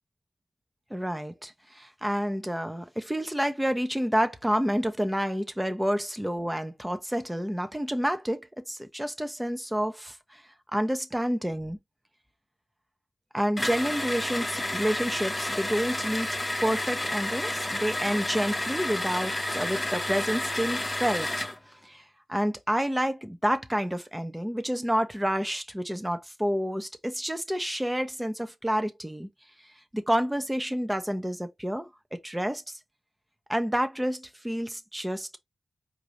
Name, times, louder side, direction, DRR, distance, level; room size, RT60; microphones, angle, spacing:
voice 1, 0.9-10.4 10.7-11.8 13.3-16.3 16.6-21.5 21.8-22.0 22.3-29.3 29.9-32.6 33.5-35.4, equal, 10° right, 0.8 m, -29 dB
sound 1, 13.6-21.6, left 1 dB, 25° left, 0.9 m, -31 dB
4.6 x 2.7 x 3.1 m
cardioid pair, 55°, 0 cm